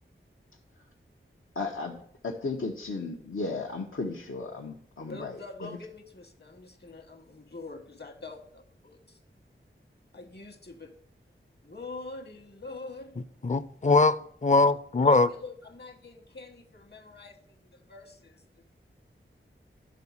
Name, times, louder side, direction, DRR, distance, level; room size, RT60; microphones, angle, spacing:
voice 1, 1.5-5.8, left 3 dB, 90° left, 1.1 m, -35 dB
voice 2, 5.0-9.2 10.1-10.9 11.6-13.1 15.0-18.6, left 3 dB, 55° left, 1.3 m, -45 dB
voice 3, 13.4-15.3, left 3 dB, 35° left, 0.5 m, -22 dB
11.5 x 4.1 x 7.2 m
wide cardioid pair, 70°, 21 cm